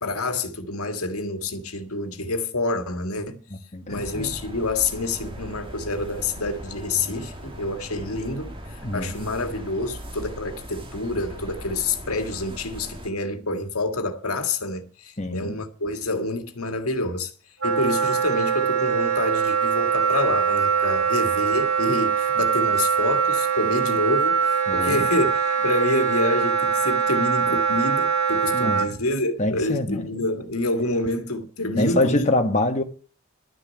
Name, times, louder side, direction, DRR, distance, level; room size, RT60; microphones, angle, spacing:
voice 1, 0.0-3.4 3.9-17.3 17.6-32.3, left 2 dB, 85° left, 1.8 m, -27 dB
voice 2, 3.5-4.3 8.8-9.3 15.2-15.6 24.7-25.1 28.5-28.9 29.4-30.1 31.8-32.8, left 1 dB, 30° left, 1.4 m, -25 dB
sound 1, 3.9-13.1, equal, 25° right, 1.9 m, -39 dB
Wind instrument woodwind instrument, 17.6-28.9, right 6 dB, 80° right, 2.5 m, -22 dB
12.0 x 6.8 x 8.5 m
head